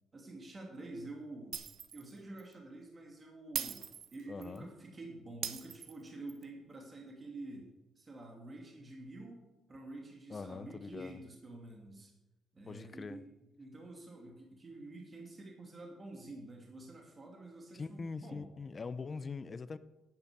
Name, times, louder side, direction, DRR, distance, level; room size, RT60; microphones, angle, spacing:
voice 1, 0.1-1.6 1.9-3.8 4.1-7.7 8.0-12.1 12.5-13.3 13.6-18.5, right 2 dB, 30° right, 0 dB, 2.6 m, -48 dB
Shatter, 1.5-2.1 2.4-2.5 3.5-4.6 5.4-6.4, right 9 dB, 70° right, 0.9 m, -40 dB
voice 2, 4.3-4.7 10.3-11.2 12.7-13.2 17.7-19.8, left 4 dB, 35° left, 14 dB, 0.7 m, -43 dB
9.9 x 9.4 x 6.8 m, 1.0 s
cardioid pair, 90°, 0 cm